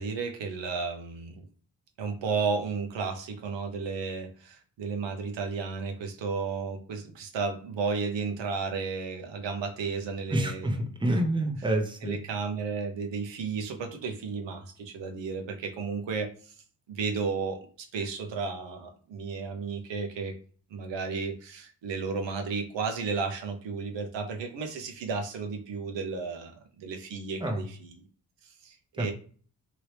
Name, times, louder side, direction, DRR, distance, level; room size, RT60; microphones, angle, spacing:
voice 1, 0.0-1.4 2.0-10.8 12.0-16.5 16.9-17.6 17.9-20.3 20.7-28.0 28.4-29.1, right 5 dB, 65° right, 5 dB, 0.8 m, -33 dB
voice 2, 10.3-12.1 27.4-27.6 29.0-29.1, right 1 dB, 10° right, 3 dB, 0.8 m, -27 dB
3.0 x 2.8 x 3.2 m, 0.43 s
supercardioid pair, 55°, 47 cm